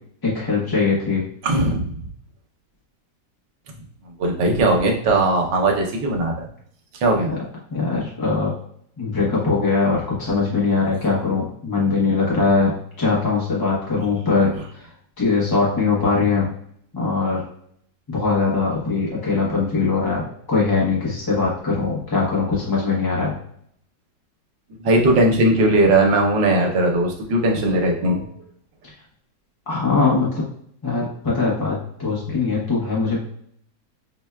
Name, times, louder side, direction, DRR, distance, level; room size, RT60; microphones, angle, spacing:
voice 1, 0.2-1.2 7.2-7.4 7.7-8.5 9.0-14.9 15.2-16.5 16.9-17.4 18.1-23.3 29.7-30.4 30.8-33.2, left 4 dB, 40° left, -5 dB, 0.3 m, -21 dB
voice 2, 1.4-2.1 4.2-6.5 7.0-7.3 24.8-28.3, right 2 dB, 80° right, 1 dB, 1.4 m, -18 dB
5.9 x 2.2 x 2.2 m, 0.65 s
omnidirectional pair, 1.9 m